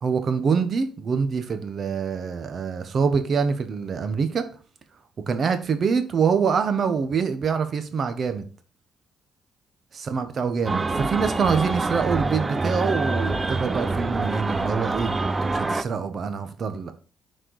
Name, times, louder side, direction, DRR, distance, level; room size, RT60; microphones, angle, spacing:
voice 1, 0.0-4.4 5.3-8.4 9.9-15.1 15.4-16.9, right 5 dB, 50° right, 1.0 m, -25 dB
sound 1, 10.7-15.8, right 3 dB, 25° right, 0.5 m, -26 dB
6.4 x 4.5 x 4.7 m
cardioid pair, 90°, 0 cm